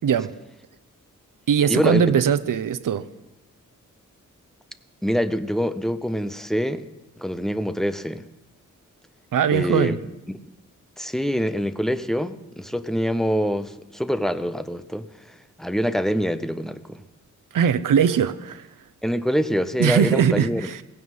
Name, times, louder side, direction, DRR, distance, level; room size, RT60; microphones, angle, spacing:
voice 1, 0.0-0.3 1.5-3.1 9.3-10.0 17.5-18.7 19.8-20.8, right 8 dB, 80° right, 0.7 m, -20 dB
voice 2, 1.7-2.1 5.0-6.9 7.2-8.2 9.5-10.0 11.0-17.0 19.0-20.7, equal, ahead, 0.6 m, -25 dB
16.5 x 16.0 x 5.5 m
wide cardioid pair, 150°, 32 cm